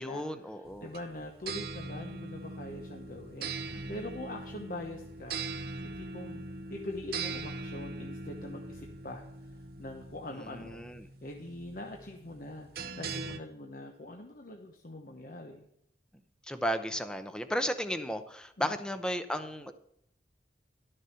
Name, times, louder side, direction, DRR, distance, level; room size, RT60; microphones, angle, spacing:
voice 1, 0.0-0.9 3.7-3.9 10.4-11.1 16.4-19.7, equal, 5° left, 9 dB, 0.7 m, -34 dB
voice 2, 0.5-6.4 6.7-10.9 11.2-15.7 18.6-18.7, left 1 dB, 50° left, 2 dB, 1.0 m, -43 dB
sound 1, 0.6-13.4, right 3 dB, 60° right, 0.7 m, -41 dB
12.0 x 6.5 x 5.7 m, 0.73 s
head